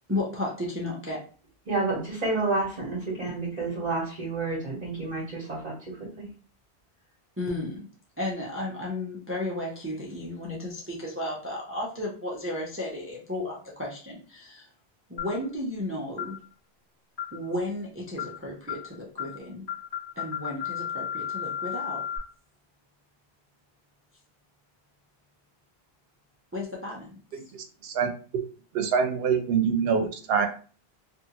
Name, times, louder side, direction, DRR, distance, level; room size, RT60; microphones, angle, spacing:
voice 1, 0.1-1.2 7.4-7.9 8.2-14.7 15.1-16.4 17.3-19.6 20.2-22.1 26.5-27.2, left 1 dB, 20° right, -3 dB, 0.4 m, -33 dB
voice 2, 1.7-5.7 6.2-6.3, right 3 dB, 45° right, -5 dB, 0.9 m, -29 dB
sound 1, 15.2-15.5 16.2-16.4 17.2-17.5 18.2-18.4 18.7-18.9 19.2-19.4 19.7-22.2, left 8 dB, 45° left, 0.7 m, -34 dB
voice 3, 27.3-28.1 28.7-30.5, right 6 dB, 75° right, 6 dB, 0.8 m, -25 dB
2.6 x 2.4 x 2.8 m, 0.39 s
omnidirectional pair, 1.1 m